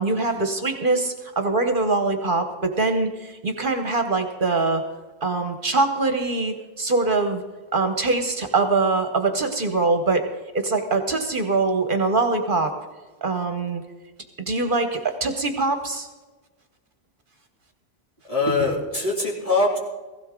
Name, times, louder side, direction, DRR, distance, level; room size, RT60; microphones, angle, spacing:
voice 1, 0.0-4.8 5.2-7.4 7.7-10.3 10.5-12.7 13.2-13.8 14.5-16.1, right 3 dB, 55° right, 6 dB, 1.2 m, -23 dB
voice 2, 18.3-19.8, left 2 dB, 35° left, -3 dB, 2.8 m, -22 dB
16.0 x 16.0 x 3.7 m, 1.2 s
omnidirectional pair, 1.1 m